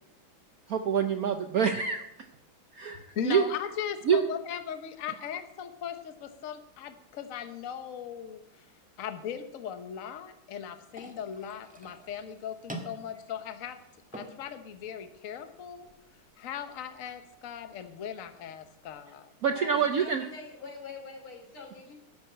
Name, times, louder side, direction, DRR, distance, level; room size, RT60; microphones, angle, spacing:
voice 1, 0.7-2.0 2.7-3.4 4.1-4.2 19.4-20.2, right 7 dB, 65° right, 7 dB, 0.9 m, -26 dB
voice 2, 3.1-8.7 9.0-13.8 14.1-15.9 16.4-19.3, left 8 dB, 50° left, 8 dB, 1.1 m, -38 dB
sound 1, 10.9-18.9, right 1 dB, 5° right, 1.1 m, -49 dB
voice 3, 19.5-22.0, left 3 dB, 85° left, 2 dB, 3.9 m, -44 dB
12.5 x 6.4 x 8.6 m, 0.87 s
omnidirectional pair, 2.3 m